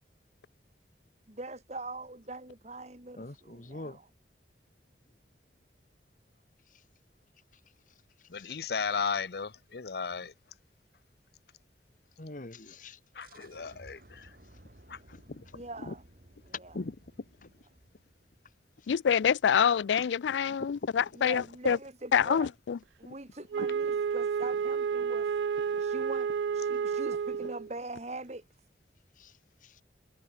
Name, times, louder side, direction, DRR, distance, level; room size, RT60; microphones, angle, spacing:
voice 1, 1.3-4.1 15.5-16.0 16.4-16.8 21.1-22.5 23.0-25.3 25.8-28.5, right 2 dB, 40° right, 2.2 m, -42 dB
voice 2, 3.2-4.0 8.3-8.6 12.2-13.0 29.2-29.3 29.6-29.8, left 2 dB, 45° left, 1.4 m, -45 dB
voice 3, 8.3-10.3 13.1-14.3 14.9-15.0 15.3-15.4 15.8-15.9 16.7-16.9 25.7-25.8, left 5 dB, 60° left, 0.7 m, -35 dB
sound 1, 13.2-18.7, right 1 dB, 55° right, 3.6 m, -57 dB
voice 4, 18.9-21.8 22.1-22.8, left 7 dB, 85° left, 0.4 m, -26 dB
Wind instrument woodwind instrument, 23.5-27.7, right 6 dB, 75° right, 0.3 m, -30 dB
head